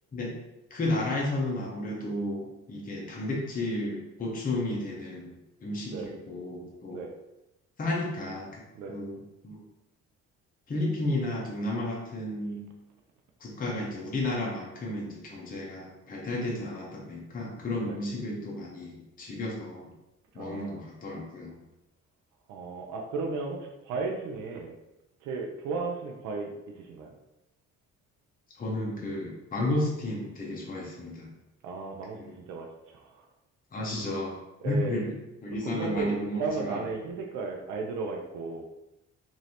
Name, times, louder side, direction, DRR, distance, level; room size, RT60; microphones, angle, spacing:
voice 1, 0.7-7.0 7.8-8.6 8.9-9.6 10.7-12.7 13.4-19.9 20.3-21.6 28.6-31.3 32.2-32.4 33.7-34.4 34.6-35.1 35.4-36.8, left 1 dB, 30° left, -3 dB, 0.7 m, -32 dB
voice 2, 20.4-20.8 22.5-24.7 25.2-27.1 31.6-33.3 34.6-35.0 35.6-36.1 36.4-38.7, right 4 dB, 85° right, 1 dB, 0.5 m, -35 dB
3.1 x 2.6 x 2.8 m, 0.94 s
cardioid pair, 90°, 30 cm